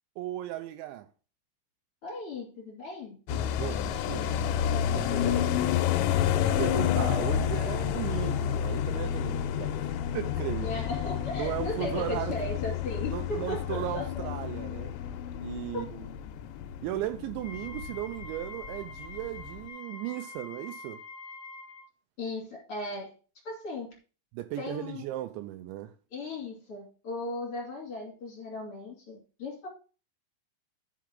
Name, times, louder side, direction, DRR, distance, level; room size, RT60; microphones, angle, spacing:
voice 1, 0.2-1.1 3.3-4.4 4.7-5.4 6.3-10.7 11.3-12.4 13.1-14.9 15.4-16.1 16.8-21.0 24.3-25.9, right 14 dB, 85° right, 2.7 m, -36 dB
voice 2, 2.0-3.2 5.2-5.9 10.6-14.3 22.2-23.1 23.4-23.9 24.6-25.0 26.1-29.7, left 2 dB, 35° left, 2.6 m, -37 dB
sound 1, 3.3-18.4 18.7-18.8 19.1-19.6, left 10 dB, 90° left, 3.4 m, -30 dB
Wind instrument woodwind instrument, 17.3-21.9, left 4 dB, 70° left, 2.0 m, -45 dB
12.0 x 5.8 x 3.8 m
omnidirectional pair, 5.8 m